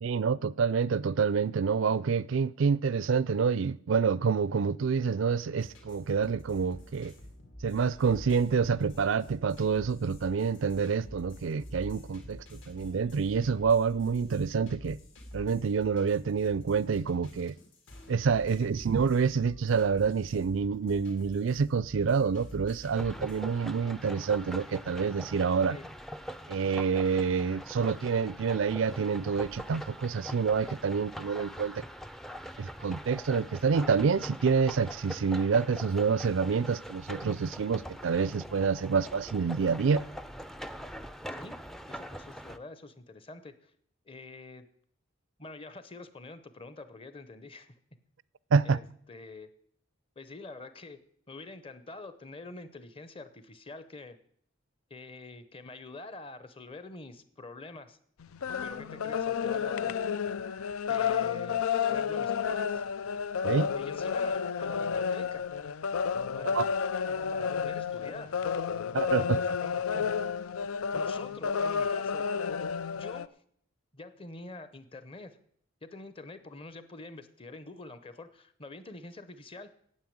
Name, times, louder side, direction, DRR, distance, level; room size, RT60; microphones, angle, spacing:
voice 1, 0.0-7.1 7.6-15.0 15.3-17.5 18.1-25.8 26.5-31.8 32.6-40.0 48.5-48.8 63.4-63.7 66.5-66.6 68.9-69.4, right 5 dB, 65° right, 0.4 m, -27 dB
sound 1, 5.6-23.4, equal, 65° left, 2.8 m, -48 dB
sound 2, 22.9-42.6, equal, ahead, 0.4 m, -43 dB
voice 2, 41.9-43.7 44.0-44.7 45.4-47.7 48.6-49.5 50.2-51.0 51.3-54.2 54.9-58.0 58.6-59.9 60.9-61.6 61.9-62.8 63.8-65.5 66.3-66.7 67.3-68.4 69.0-70.1 70.9-72.3 72.9-73.4 73.9-75.4 75.8-79.7, left 2 dB, 25° left, 0.8 m, -46 dB
sound 3, 58.2-73.3, left 6 dB, 90° left, 0.5 m, -31 dB
9.5 x 8.4 x 8.6 m
head